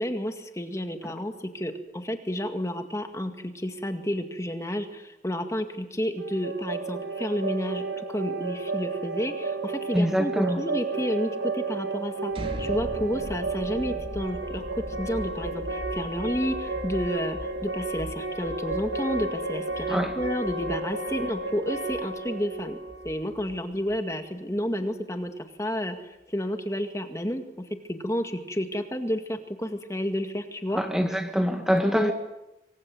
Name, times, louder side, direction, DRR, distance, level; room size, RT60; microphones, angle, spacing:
voice 1, 0.0-12.3 12.6-22.8 23.0-25.3 25.6-30.8 31.9-32.1, equal, 15° left, 2.0 m, -31 dB
sound 1, 6.2-24.0, right 3 dB, 75° right, 2.3 m, -32 dB
voice 2, 9.9-10.6 19.9-20.2 30.7-32.1, equal, 5° right, 1.7 m, -25 dB
sound 2, 12.3-24.1, equal, 30° right, 2.9 m, -40 dB
28.0 x 23.5 x 7.9 m
head